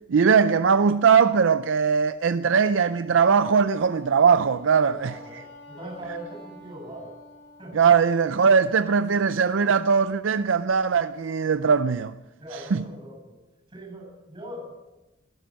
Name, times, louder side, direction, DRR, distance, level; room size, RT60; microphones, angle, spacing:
voice 1, 0.1-5.2 7.7-12.1 12.5-12.8, right 6 dB, 80° right, 0.5 m, -20 dB
Wind instrument woodwind instrument, 3.7-7.9, left 1 dB, 75° left, 4.6 m, -47 dB
voice 2, 4.7-7.2 7.6-7.8 12.4-13.4 13.7-14.8, right 1 dB, 25° right, 7.7 m, -40 dB
17.0 x 13.5 x 6.4 m
head